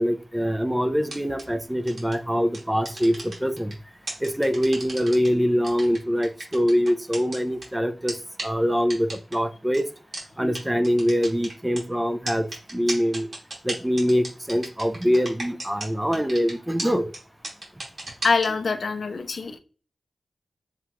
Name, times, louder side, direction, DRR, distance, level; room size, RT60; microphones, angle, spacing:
voice 1, 0.0-3.7 4.2-8.1 8.4-9.9 10.4-12.5 12.7-13.3 13.6-17.1, equal, 10° right, 0.5 m, -24 dB
sound 1, 1.0-1.4 1.9-2.1 2.5-3.7 4.1-5.3 5.6-7.6 8.1-8.2 8.4-8.5 8.9-9.3 9.7-9.8 10.1-10.2 10.5-10.6 10.8-11.8 12.3-15.9 16.1-16.5 16.8-16.9 17.1-17.2 17.4-18.5, right 2 dB, 60° right, 2.3 m, -33 dB
voice 2, 18.2-19.6, left 4 dB, 70° left, 0.6 m, -24 dB
7.2 x 2.5 x 2.9 m
wide cardioid pair, 80°, 0 cm